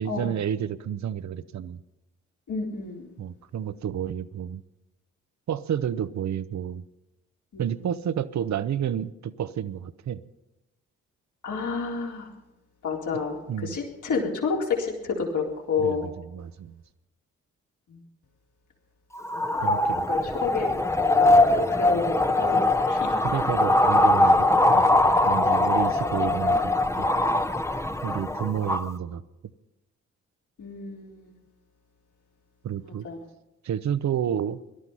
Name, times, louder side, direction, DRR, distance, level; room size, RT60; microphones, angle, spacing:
voice 1, 0.0-1.8 3.2-4.6 5.5-6.8 7.6-10.2 13.5-13.8 15.8-16.8 19.6-20.1 21.3-21.5 23.2-24.9 25.2-26.7 27.0-27.1 28.0-29.2 32.6-33.1 33.6-34.6, right 9 dB, 60° right, 15 dB, 1.0 m, -30 dB
voice 2, 2.5-3.1 7.5-7.7 11.4-12.3 12.8-16.1 17.9-18.0 19.3-19.5 20.1-20.7 21.1-23.1 28.1-28.3 30.6-31.3 32.8-33.2, left 5 dB, 65° left, -1 dB, 4.1 m, -30 dB
sound 1, 19.2-28.9, left 2 dB, 10° left, 1.0 m, -22 dB
18.0 x 12.0 x 5.6 m, 0.96 s
supercardioid pair, 50°, 32 cm